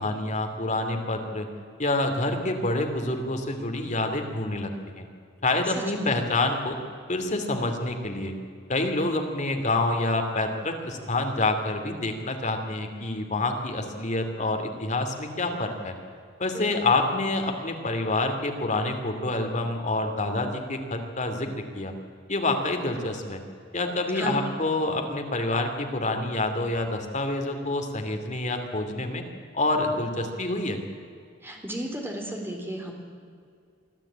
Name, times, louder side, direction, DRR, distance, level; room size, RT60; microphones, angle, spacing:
voice 1, 0.0-1.5 1.8-5.0 5.4-6.8 7.1-8.3 8.7-15.9 16.4-21.5 21.7-21.9 22.3-23.4 23.7-29.2 29.5-30.8, left 2 dB, 40° left, 4 dB, 2.8 m, -27 dB
voice 2, 5.8-6.2 16.5-16.9 24.1-24.5 31.4-32.9, right 1 dB, 10° right, 1 dB, 3.9 m, -34 dB
24.5 x 14.0 x 8.8 m, 2.2 s
head